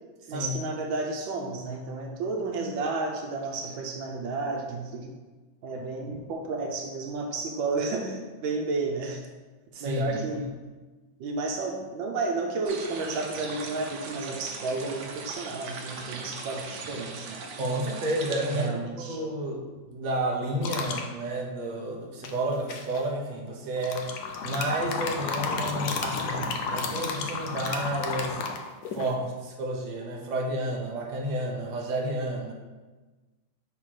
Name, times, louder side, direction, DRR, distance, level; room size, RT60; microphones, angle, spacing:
voice 1, 0.3-5.1 5.6-9.2 9.8-10.5 11.2-17.4 18.5-19.2, right 3 dB, 85° right, 2 dB, 1.4 m, -32 dB
voice 2, 9.7-10.4 17.6-24.1 24.4-28.4 28.9-32.5, right 1 dB, 40° right, -1 dB, 0.6 m, -31 dB
sound 1, 12.6-18.7, right 4 dB, 65° right, 1.3 m, -40 dB
sound 2, 20.6-21.1 22.2-23.0 23.8-29.1, left 4 dB, 65° left, 1.1 m, -32 dB
5.8 x 4.1 x 4.7 m, 1.3 s
omnidirectional pair, 2.1 m